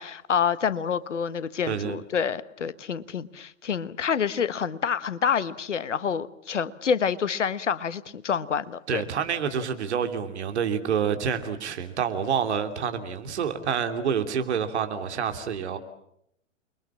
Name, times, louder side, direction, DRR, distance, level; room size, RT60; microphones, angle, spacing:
voice 1, 0.0-9.0, left 7 dB, 70° left, 16 dB, 1.3 m, -27 dB
voice 2, 1.7-2.0 8.9-15.8, right 7 dB, 60° right, 7 dB, 3.1 m, -28 dB
29.5 x 23.0 x 7.3 m, 0.75 s
figure-of-eight pair, 100°, 37 cm